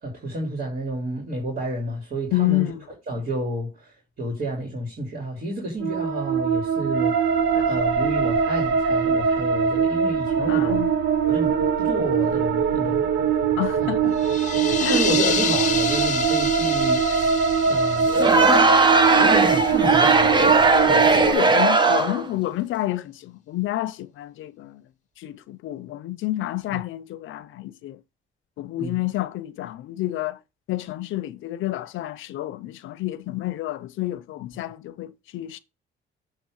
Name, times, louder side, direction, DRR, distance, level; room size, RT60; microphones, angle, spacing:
voice 1, 0.0-2.7 3.1-7.1 7.7-10.8 11.3-13.1 13.8-13.9 14.5-18.7 19.1-21.1 26.7-26.8 28.8-29.0, right 1 dB, 50° right, 2.9 m, -30 dB
voice 2, 2.3-2.9 7.5-7.7 10.5-10.9 13.6-14.2 14.8-15.0 20.9-24.8 25.2-28.0 28.6-30.4 30.7-35.6, left 16 dB, 80° left, 0.6 m, -29 dB
sound 1, 5.8-21.3, right 6 dB, 70° right, 1.0 m, -22 dB
sound 2, 14.1-19.8, left 6 dB, 40° left, 0.9 m, -29 dB
Crowd, 18.1-22.3, right 3 dB, 25° right, 1.0 m, -18 dB
7.5 x 3.2 x 6.3 m
cardioid pair, 90°, 20 cm